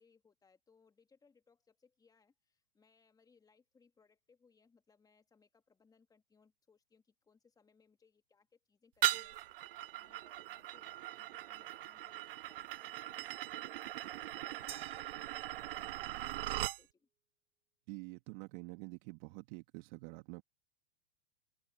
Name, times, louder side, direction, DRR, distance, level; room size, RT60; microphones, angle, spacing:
voice 1, 0.0-16.9, left 5 dB, 10° left, 2.5 m, -70 dB
sound 1, 9.0-16.8, right 15 dB, 65° right, 0.6 m, -39 dB
sound 2, 14.7-16.1, right 9 dB, 20° right, 2.9 m, -53 dB
voice 2, 17.9-20.4, right 28 dB, 50° right, 2.7 m, -47 dB
hypercardioid pair, 115°, 30 cm